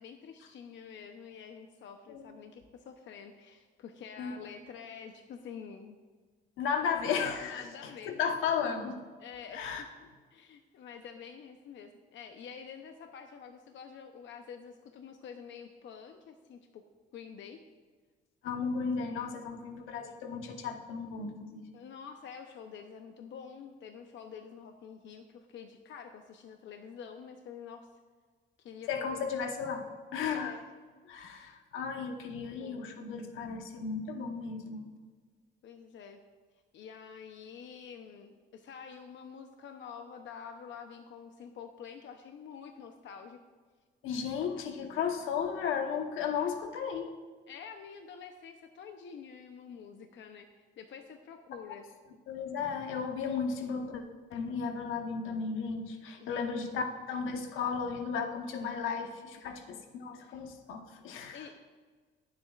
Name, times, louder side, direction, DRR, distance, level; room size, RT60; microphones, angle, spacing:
voice 1, 0.0-6.0 7.4-8.2 9.2-9.9 10.3-16.8 17.1-17.6 21.7-27.9 28.6-29.8 30.3-30.6 31.9-33.0 35.6-36.2 36.7-43.4 47.5-51.9 53.3-53.4 56.2-56.5 57.0-57.1 59.4-59.5 60.1-60.4 61.3-61.6, left 7 dB, 70° left, 5 dB, 0.7 m, -48 dB
voice 2, 6.6-9.0 9.5-9.8 18.4-21.6 28.9-29.8 30.1-30.5 31.1-34.8 44.0-47.1 52.3-54.0 54.3-61.5, left 6 dB, 90° left, 5 dB, 1.1 m, -34 dB
19.5 x 7.7 x 2.4 m, 1.5 s
cardioid pair, 90°, 20 cm